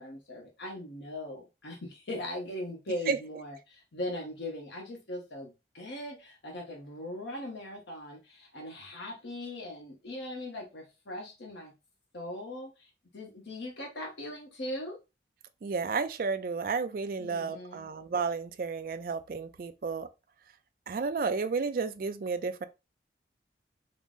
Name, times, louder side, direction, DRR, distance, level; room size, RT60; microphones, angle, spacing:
voice 1, 0.0-11.7 12.1-15.0 17.2-17.9, left 1 dB, 80° left, 0.9 m, -40 dB
voice 2, 15.6-20.1 20.9-22.7, right 4 dB, 50° right, 0.3 m, -32 dB
3.8 x 2.0 x 3.6 m
head